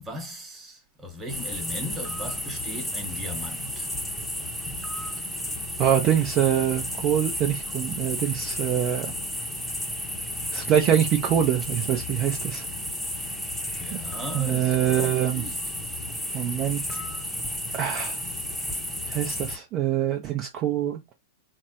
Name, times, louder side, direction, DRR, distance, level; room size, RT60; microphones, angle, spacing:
voice 1, 0.0-3.9 13.7-15.6, left 1 dB, 15° right, 1.2 m, -38 dB
sound 1, 1.3-19.6, left 1 dB, ahead, 0.7 m, -32 dB
voice 2, 5.8-9.1 10.5-12.6 14.3-15.4 16.3-17.0 17.7-18.2 19.1-21.1, right 10 dB, 40° right, 0.6 m, -24 dB
3.3 x 2.1 x 2.9 m
hypercardioid pair, 105°, 0 cm